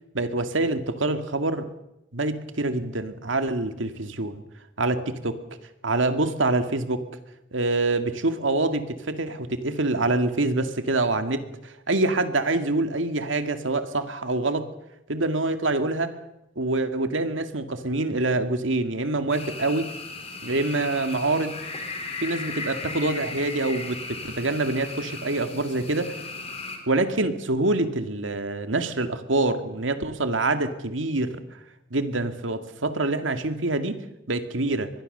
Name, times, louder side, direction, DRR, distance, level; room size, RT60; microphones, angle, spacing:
voice 1, 0.1-1.7 2.1-4.4 4.8-5.4 5.8-7.0 7.5-14.6 15.1-16.1 16.6-19.9 20.4-21.5 22.2-26.2 26.9-31.4 31.9-34.0 34.3-34.9, right 2 dB, 85° right, 8 dB, 2.1 m, -25 dB
sound 1, 19.3-26.8, left 3 dB, 30° left, 3.9 m, -36 dB
24.5 x 20.5 x 6.7 m, 0.87 s
head